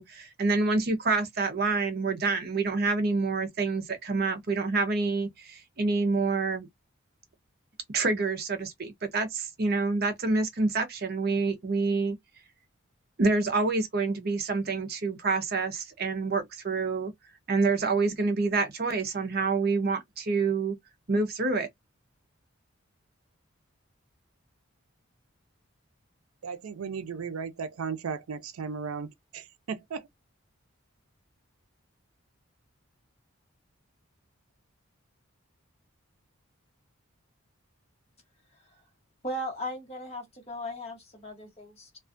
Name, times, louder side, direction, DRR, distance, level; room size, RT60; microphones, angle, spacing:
voice 1, 0.0-6.7 7.9-12.2 13.2-17.1 17.5-20.8 21.1-21.7, right 3 dB, 45° right, 0.6 m, -27 dB
voice 2, 26.4-30.1, right 5 dB, 90° right, 0.5 m, -36 dB
voice 3, 39.2-42.0, equal, 30° left, 1.1 m, -37 dB
2.4 x 2.3 x 2.5 m
head